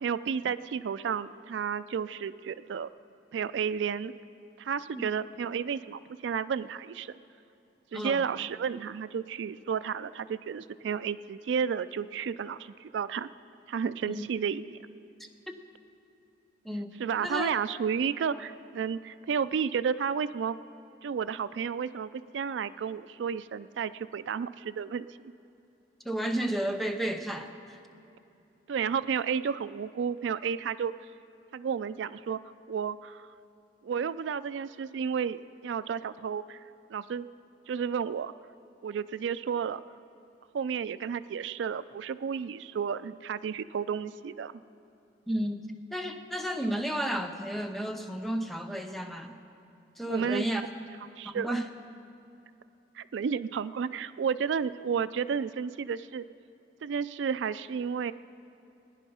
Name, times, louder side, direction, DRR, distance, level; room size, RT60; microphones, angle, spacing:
voice 1, 0.0-2.9 3.3-4.1 4.6-7.1 7.9-13.3 13.7-14.8 17.0-20.6 21.0-25.1 28.7-30.9 31.5-32.4 32.7-33.3 33.8-36.6 36.9-37.3 37.7-38.3 38.8-39.8 40.5-44.5 50.1-50.5 51.2-51.6 53.0-56.2 56.8-58.1, right 7 dB, 90° right, 15 dB, 0.3 m, -32 dB
voice 2, 7.9-8.2 14.1-14.3 15.5-15.6 16.6-17.5 26.0-27.8 45.3-49.3 50.0-50.6 51.2-51.7, right 1 dB, ahead, 4 dB, 0.7 m, -32 dB
18.5 x 10.0 x 5.5 m, 2.9 s
head